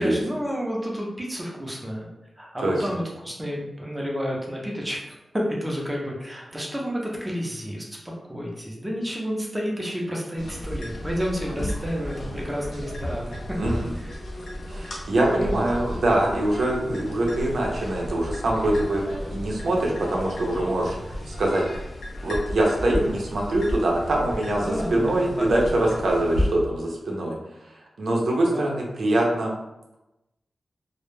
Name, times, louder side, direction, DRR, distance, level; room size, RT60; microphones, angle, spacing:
voice 1, 0.0-2.1 2.4-13.4 14.0-14.1 15.3-15.6 24.6-25.4 28.5-28.8, equal, 10° right, -2 dB, 0.5 m, -30 dB
sound 1, 10.4-26.5, equal, 85° left, 0.6 m, -33 dB
voice 2, 13.6-13.9 14.7-21.6 22.2-29.5, right 1 dB, 85° right, -2 dB, 0.5 m, -24 dB
2.2 x 2.0 x 3.1 m, 0.93 s
wide cardioid pair, 145°, 0 cm